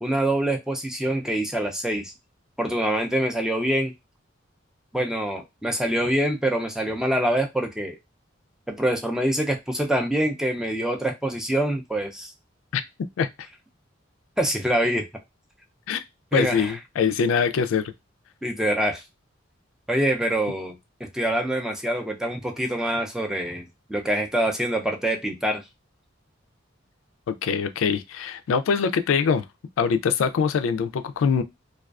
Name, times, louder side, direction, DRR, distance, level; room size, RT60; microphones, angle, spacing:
voice 1, 0.0-2.1 2.6-3.9 4.9-8.0 8.7-12.3 14.4-15.1 16.3-16.7 18.4-19.0 19.9-20.8 21.1-25.6, right 1 dB, 5° right, 0.4 m, -25 dB
voice 2, 16.3-17.9 27.3-29.4 29.8-31.4, left 6 dB, 90° left, 0.3 m, -23 dB
2.3 x 2.3 x 2.3 m
head